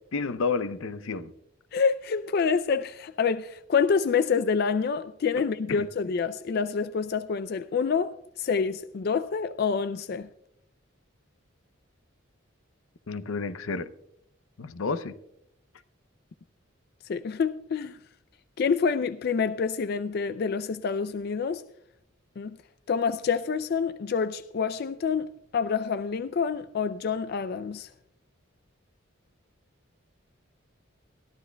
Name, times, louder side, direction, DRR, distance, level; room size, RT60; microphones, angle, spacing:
voice 1, 0.1-1.3 5.7-5.8 13.1-13.9 14.6-15.2, left 4 dB, 85° left, 0.6 m, -30 dB
voice 2, 1.7-10.3 17.1-18.0 18.6-21.6 22.4-22.6 22.9-27.9, left 5 dB, 50° left, 0.3 m, -27 dB
22.0 x 14.0 x 2.2 m
head